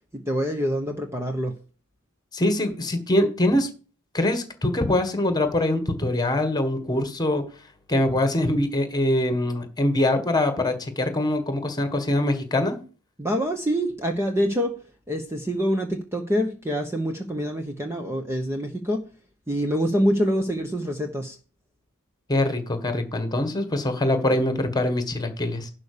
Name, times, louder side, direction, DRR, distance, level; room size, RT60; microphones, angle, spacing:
voice 1, 0.1-1.5 13.2-14.7 15.1-19.0 19.5-21.4, equal, 10° right, 4 dB, 1.0 m, -25 dB
voice 2, 2.3-3.7 4.1-7.4 7.9-12.8 22.3-25.7, left 1 dB, 20° left, 8 dB, 1.6 m, -23 dB
11.5 x 4.2 x 6.8 m, 0.37 s
head